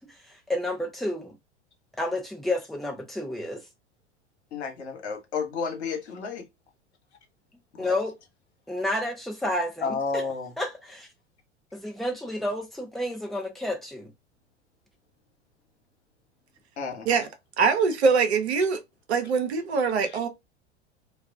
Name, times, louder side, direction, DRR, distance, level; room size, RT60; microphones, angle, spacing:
voice 1, 0.1-1.3 2.0-3.6 7.8-8.1 8.7-10.3 10.6-11.1 11.7-14.1, left 1 dB, ahead, 0.7 m, -30 dB
voice 2, 4.5-6.4 7.7-8.0 9.8-10.5 16.8-17.1 20.0-20.1, left 4 dB, 65° left, 1.1 m, -31 dB
voice 3, 17.6-18.8 19.1-20.3, right 5 dB, 65° right, 0.8 m, -23 dB
2.4 x 2.3 x 3.6 m
figure-of-eight pair, 85°, 35 cm